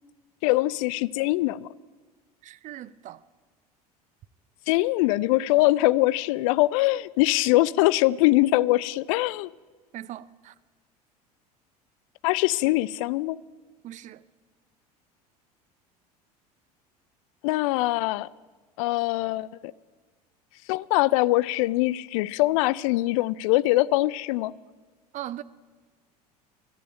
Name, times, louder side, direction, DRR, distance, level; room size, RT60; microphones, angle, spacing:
voice 1, 0.4-1.7 4.7-9.5 12.2-13.4 17.4-18.3 18.8-19.7 20.7-24.5, left 18 dB, 55° left, 0.4 m, -23 dB
voice 2, 2.4-3.2 9.9-10.5 13.8-14.2 25.1-25.4, right 13 dB, 40° right, 0.6 m, -39 dB
12.5 x 9.1 x 8.8 m
figure-of-eight pair, 70°, 20 cm